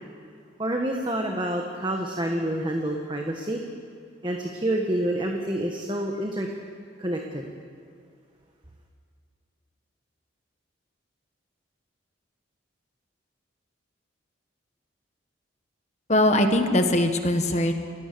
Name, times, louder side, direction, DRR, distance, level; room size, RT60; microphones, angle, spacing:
voice 1, 0.6-3.6 4.2-6.5 7.0-7.5, right 1 dB, 25° right, 2 dB, 1.4 m, -28 dB
voice 2, 16.1-17.7, left 1 dB, 35° left, 6 dB, 1.6 m, -21 dB
29.0 x 17.0 x 6.9 m, 2.2 s
head